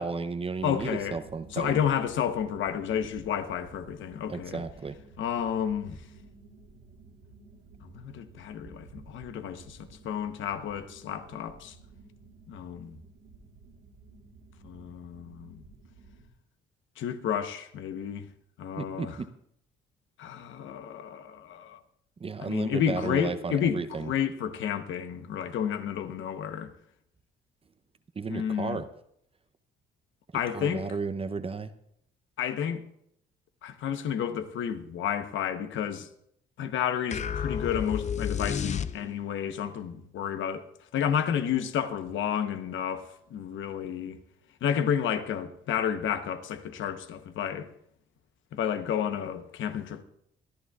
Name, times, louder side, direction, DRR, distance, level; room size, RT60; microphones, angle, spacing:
voice 1, 0.0-1.8 4.3-5.0 18.8-19.3 22.2-24.1 28.2-28.9 30.5-31.7, right 4 dB, 30° right, 0.7 m, -33 dB
voice 2, 0.6-1.2 1.5-4.6 5.2-6.0 7.8-11.7 12.5-13.0 14.6-15.6 17.0-18.3 18.6-19.2 20.2-21.8 22.4-26.7 28.3-28.8 30.3-30.9 32.4-32.8 33.6-36.1 36.6-40.7 40.9-44.2 44.6-47.7 48.5-50.0, left 8 dB, 75° left, 1.0 m, -31 dB
sound 1, 0.6-16.3, right 3 dB, 85° right, 3.2 m, -53 dB
sound 2, 37.1-39.4, left 7 dB, 35° left, 0.5 m, -31 dB
24.5 x 11.5 x 2.4 m
cardioid pair, 90°, 20 cm